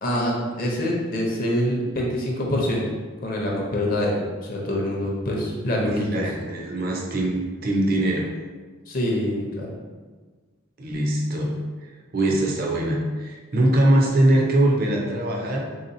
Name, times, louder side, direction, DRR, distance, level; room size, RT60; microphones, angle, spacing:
voice 1, 0.0-2.8 3.2-6.2 8.9-9.7, left 1 dB, 45° left, -2 dB, 0.6 m, -25 dB
voice 2, 6.1-8.3 10.8-11.5 12.1-15.7, right 1 dB, 45° right, -1 dB, 0.5 m, -22 dB
3.6 x 2.8 x 2.6 m, 1.4 s
head